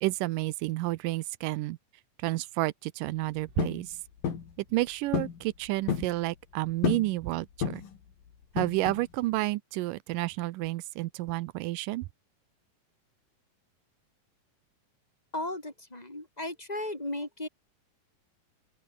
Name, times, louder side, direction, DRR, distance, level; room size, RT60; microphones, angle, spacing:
voice 1, 0.0-1.8 2.2-4.0 4.7-7.8 8.6-12.1, right 18 dB, 80° right, 2.2 m, -30 dB
sound 1, 3.6-3.8 4.2-4.5 5.1-5.4 5.7-6.1 6.8-7.1 7.6-8.0 8.6-9.0, left 7 dB, 70° left, 4.8 m, -30 dB
voice 2, 15.3-17.5, left 1 dB, 10° left, 6.5 m, -35 dB
open air
omnidirectional pair, 4.1 m